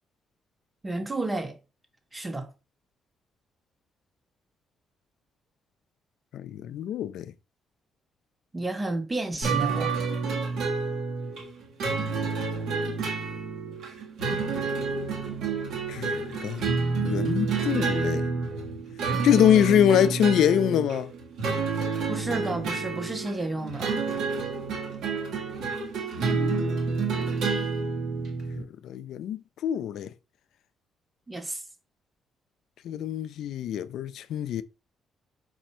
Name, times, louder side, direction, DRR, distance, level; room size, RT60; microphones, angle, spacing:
voice 1, 0.8-1.6 2.1-2.5 8.5-9.9 22.1-23.9 31.3-31.6, right 2 dB, 20° right, 1.1 m, -31 dB
voice 2, 6.3-7.3 15.9-16.6 17.0-18.3 19.2-21.1 26.2-27.2 28.6-30.1 32.8-34.6, left 10 dB, 75° left, 0.3 m, -25 dB
sound 1, 9.4-28.6, right 4 dB, 80° right, 1.2 m, -29 dB
4.4 x 2.5 x 4.2 m
cardioid pair, 90°, 0 cm